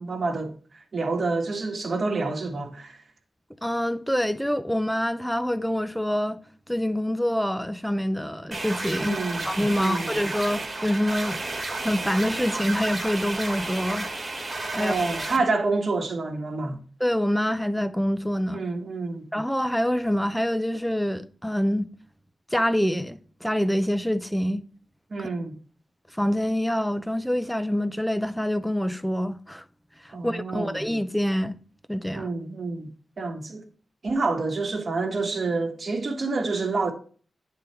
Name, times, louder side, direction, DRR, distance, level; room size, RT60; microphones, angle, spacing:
voice 1, 0.0-3.0 9.0-9.5 9.7-10.1 14.7-16.8 18.5-19.3 25.1-25.5 30.1-30.8 32.1-32.9 33.2-33.6 34.0-36.9, right 3 dB, 50° right, 1.3 m, -28 dB
voice 2, 3.6-6.4 6.7-9.2 9.4-11.4 11.8-14.1 14.7-15.3 17.0-18.6 19.3-21.9 22.5-24.6 25.2-25.3 26.2-29.6 30.2-31.5 31.9-32.3, equal, 5° left, 0.5 m, -26 dB
sound 1, 8.5-15.4, right 2 dB, 35° right, 1.5 m, -32 dB
9.5 x 3.9 x 4.3 m
cardioid pair, 80°, 0 cm